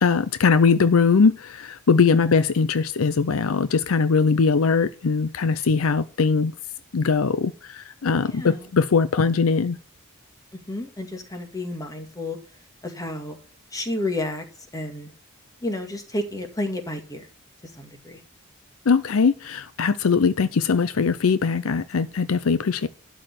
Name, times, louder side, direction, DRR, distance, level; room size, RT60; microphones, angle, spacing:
voice 1, 0.0-6.5 6.9-9.8 18.9-22.9, left 5 dB, 70° left, 0.6 m, -21 dB
voice 2, 8.2-8.7 10.7-12.4 12.8-13.4 13.7-14.4 14.7-15.1 15.6-17.3 17.8-18.2, left 1 dB, 15° left, 2.0 m, -31 dB
12.0 x 4.8 x 7.7 m
head